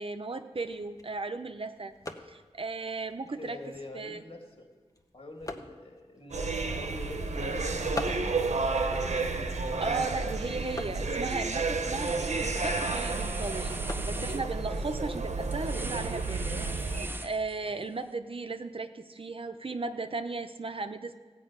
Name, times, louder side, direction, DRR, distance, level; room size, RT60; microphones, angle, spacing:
voice 1, 0.0-1.9 2.3-3.6 3.9-4.2 9.8-13.8 14.0-16.9 17.2-21.1, right 3 dB, 55° right, 8 dB, 0.7 m, -36 dB
sound 1, 0.5-16.1, left 2 dB, 30° left, 1.0 m, -47 dB
voice 2, 3.4-4.7 5.1-9.6 17.6-17.8, left 1 dB, 60° left, 1 dB, 2.4 m, -45 dB
sound 2, 6.3-17.1, right 3 dB, 90° right, 0.9 m, -31 dB
sound 3, 10.7-11.0 11.3-17.8, right 1 dB, 20° right, 0.6 m, -42 dB
15.5 x 5.6 x 8.8 m, 1.5 s
wide cardioid pair, 85°, 11 cm